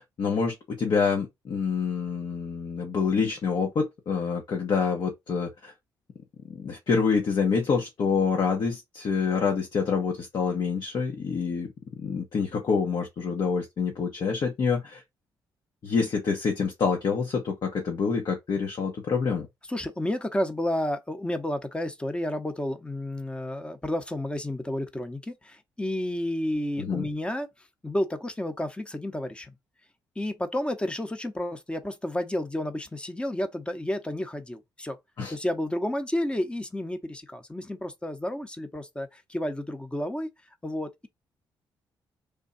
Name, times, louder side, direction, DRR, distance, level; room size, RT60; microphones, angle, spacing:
voice 1, 0.2-5.7 6.5-11.7 12.0-15.0 15.8-19.5 26.8-27.1 35.2-35.3, left 5 dB, 60° left, 1.0 m, -27 dB
voice 2, 19.7-27.5 27.8-29.6 30.2-35.0 35.3-40.3 40.6-41.1, left 1 dB, 10° left, 0.8 m, -31 dB
3.5 x 2.2 x 4.0 m
cardioid pair, 70°, 8 cm